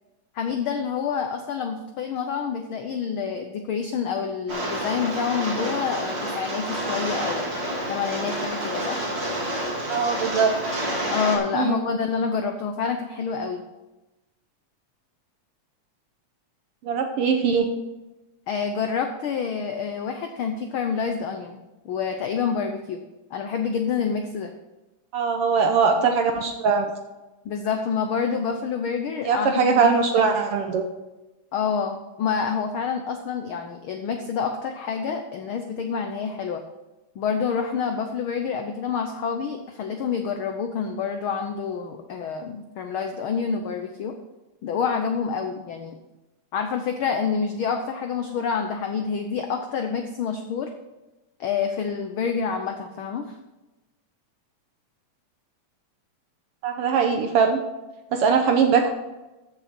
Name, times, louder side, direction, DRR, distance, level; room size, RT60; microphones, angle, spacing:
voice 1, 0.3-7.4 7.9-9.0 11.1-13.6 18.5-21.6 21.8-23.0 23.3-24.5 27.4-29.9 31.5-36.6 37.1-44.1 44.6-46.0 46.5-50.7 51.4-53.3, left 6 dB, 85° left, 5 dB, 1.1 m, -27 dB
Rain, 4.5-11.4, right 1 dB, 25° right, 2.0 m, -29 dB
voice 2, 9.9-10.5 11.5-11.8 16.8-17.7 25.1-26.9 29.2-30.8 56.6-57.6 58.1-58.9, right 5 dB, 70° right, 5 dB, 1.4 m, -21 dB
14.5 x 6.7 x 4.4 m, 1.0 s
omnidirectional pair, 3.3 m